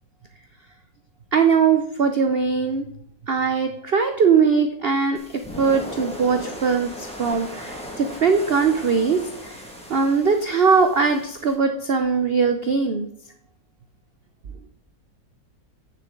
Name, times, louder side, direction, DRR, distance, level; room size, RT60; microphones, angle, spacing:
voice 1, 1.3-2.8 3.3-9.6 9.9-13.1, right 5 dB, 85° right, 7 dB, 0.5 m, -20 dB
sound 1, 5.1-11.5, equal, 5° left, 1.6 m, -37 dB
9.5 x 6.9 x 3.8 m, 0.70 s
omnidirectional pair, 2.0 m